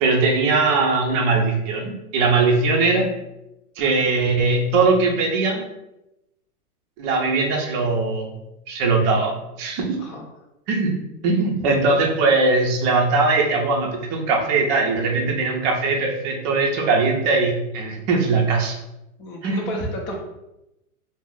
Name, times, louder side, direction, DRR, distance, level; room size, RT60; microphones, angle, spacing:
voice 1, 0.0-3.1 3.8-5.6 7.0-8.3 8.7-9.3 9.6-10.0 10.7-10.9 11.2-18.8 19.4-19.7, right 3 dB, 30° right, 0 dB, 0.5 m, -20 dB
voice 2, 19.2-20.2, equal, 25° left, 0 dB, 0.5 m, -31 dB
2.4 x 2.0 x 3.7 m, 0.91 s
hypercardioid pair, 130°, 47 cm